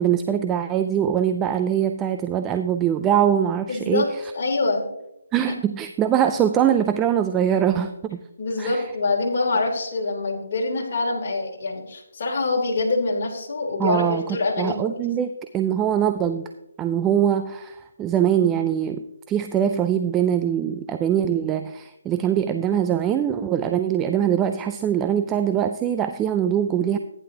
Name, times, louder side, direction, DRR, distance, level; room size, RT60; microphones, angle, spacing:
voice 1, 0.0-4.1 5.3-8.2 8.6-8.8 13.8-14.3 14.6-16.5 16.8-27.0, right 9 dB, 10° right, 8 dB, 0.3 m, -22 dB
voice 2, 3.7-4.9 8.4-15.0, left 3 dB, 45° left, -3 dB, 3.0 m, -25 dB
15.0 x 10.0 x 2.8 m, 0.84 s
hypercardioid pair, 165°, 0 cm